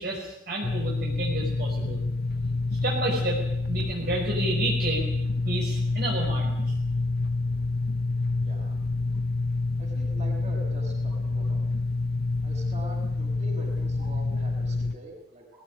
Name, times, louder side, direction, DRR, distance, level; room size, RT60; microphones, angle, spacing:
voice 1, 0.0-2.0 2.8-3.4 3.7-5.1 5.4-6.7 14.0-14.1, right 1 dB, 55° right, -3 dB, 5.3 m, -30 dB
sound 1, 0.6-14.9, left 3 dB, 55° left, 0.8 m, -28 dB
voice 2, 8.4-8.7 9.8-11.8 12.4-15.4, equal, 35° right, 0 dB, 7.1 m, -44 dB
20.5 x 17.5 x 9.8 m, 0.80 s
head